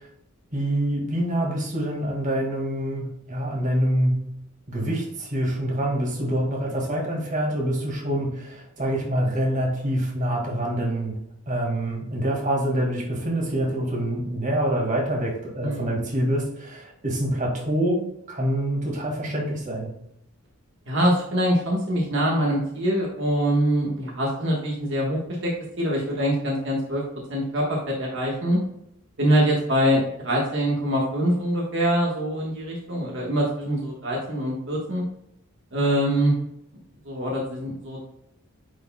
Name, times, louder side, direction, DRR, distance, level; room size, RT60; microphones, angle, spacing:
voice 1, 0.5-4.2 4.7-11.1 11.5-19.9, right 1 dB, 35° right, -1 dB, 1.9 m, -26 dB
voice 2, 15.6-15.9 20.9-25.5 25.8-27.0 27.3-28.6 29.2-35.0 35.7-36.3 37.0-38.0, equal, 60° right, -3 dB, 1.3 m, -24 dB
9.6 x 4.7 x 2.2 m, 0.78 s
head